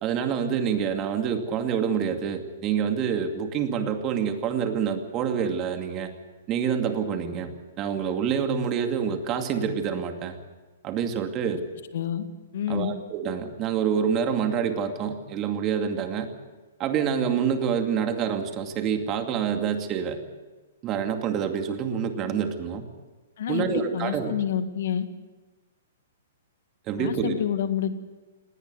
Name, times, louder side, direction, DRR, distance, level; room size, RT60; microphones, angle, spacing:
voice 1, 0.0-6.1 6.5-7.5 7.8-10.4 10.8-11.6 12.7-16.3 16.8-20.2 20.8-22.9 23.5-24.3 26.9-27.4, right 7 dB, 30° right, 6 dB, 2.4 m, -27 dB
voice 2, 11.9-12.2 12.5-12.9 23.4-25.1 27.0-28.0, left 9 dB, 65° left, 10 dB, 1.8 m, -28 dB
19.0 x 19.0 x 8.1 m, 1.2 s
hypercardioid pair, 130°, 0 cm